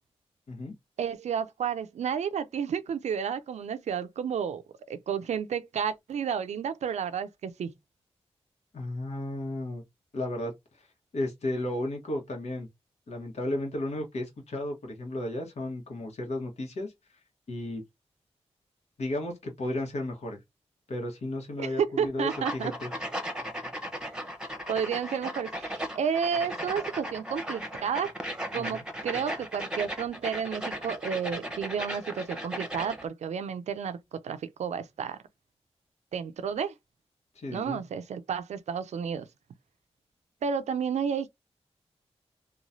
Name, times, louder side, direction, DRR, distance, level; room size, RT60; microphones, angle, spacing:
voice 1, 1.0-4.6 4.9-7.7 21.6-22.7 24.7-28.1 28.5-35.2 36.1-36.7 37.5-39.3 40.4-41.3, right 7 dB, 90° right, 0.4 m, -31 dB
voice 2, 8.7-9.8 10.1-10.9 11.1-12.7 13.1-16.9 17.5-17.8 19.0-20.4 20.9-22.9 28.6-28.8 37.3-37.8, left 1 dB, 75° left, 1.1 m, -34 dB
sound 1, 22.3-33.0, equal, 5° right, 0.8 m, -36 dB
3.1 x 2.2 x 2.5 m
cardioid pair, 65°, 11 cm